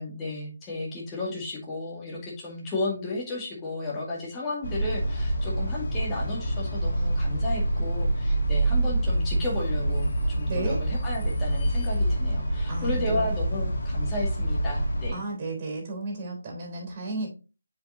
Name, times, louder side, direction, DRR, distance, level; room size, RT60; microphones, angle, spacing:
voice 1, 0.0-10.1 10.4-15.2, left 2 dB, 15° left, -4 dB, 2.1 m, -33 dB
sound 1, 4.6-15.1, right 1 dB, 45° left, 2.1 m, -26 dB
voice 2, 10.5-10.8 12.7-13.3 15.1-17.3, right 2 dB, 25° right, 0 dB, 3.5 m, -33 dB
7.4 x 5.1 x 2.8 m, 0.32 s
figure-of-eight pair, 155°, 0 cm